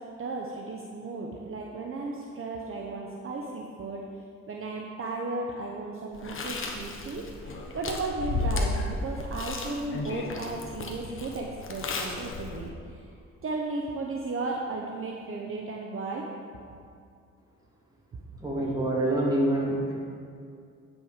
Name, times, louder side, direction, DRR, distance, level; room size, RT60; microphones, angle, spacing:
voice 1, 0.0-4.0 4.5-12.7 13.4-16.3 16.7-16.8, right 3 dB, 45° right, -1 dB, 1.0 m, -35 dB
Chewing mastication, 6.1-12.7, left 2 dB, 45° left, 1.2 m, -33 dB
voice 2, 18.4-19.9, right 1 dB, 15° right, -4 dB, 2.4 m, -26 dB
9.0 x 6.3 x 5.0 m, 2.3 s
cardioid pair, 90°, 30 cm